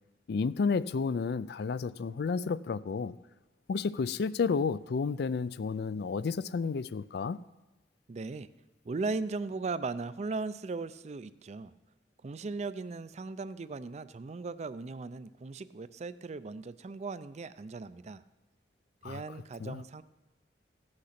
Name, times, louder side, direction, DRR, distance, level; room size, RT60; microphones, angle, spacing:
voice 1, 0.3-3.2 3.7-7.4 19.0-19.2 19.6-19.8, left 5 dB, 60° left, 0.4 m, -31 dB
voice 2, 8.1-8.5 8.8-11.7 12.2-18.2 19.0-20.0, right 3 dB, 40° right, 0.4 m, -38 dB
15.5 x 6.4 x 5.8 m
head